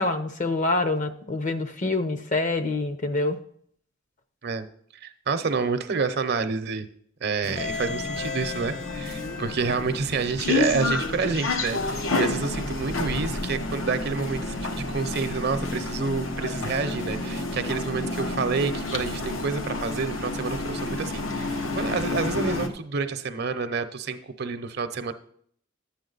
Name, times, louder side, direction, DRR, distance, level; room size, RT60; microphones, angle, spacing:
voice 1, 0.0-3.4, left 2 dB, 40° left, 8 dB, 0.8 m, -26 dB
voice 2, 5.0-6.9 7.2-25.1, right 4 dB, 50° right, 9 dB, 0.7 m, -28 dB
sound 1, 7.4-22.7, left 2 dB, 80° left, 1.1 m, -30 dB
12.0 x 8.5 x 4.0 m, 0.62 s
head